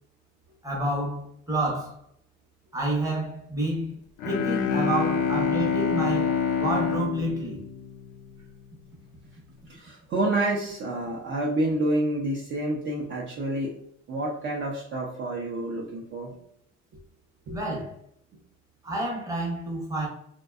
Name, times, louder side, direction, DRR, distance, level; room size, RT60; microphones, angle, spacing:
voice 1, 0.6-2.0 2.7-3.9 4.2-7.6 17.5-18.0 18.8-20.1, right 1 dB, 10° right, 0.7 m, -29 dB
Bowed string instrument, 4.2-8.5, left 6 dB, 90° left, 0.5 m, -26 dB
voice 2, 9.7-13.7 14.1-16.3 17.5-17.6, right 1 dB, 40° right, 0.5 m, -28 dB
2.6 x 2.1 x 2.3 m
cardioid pair, 120°, 30 cm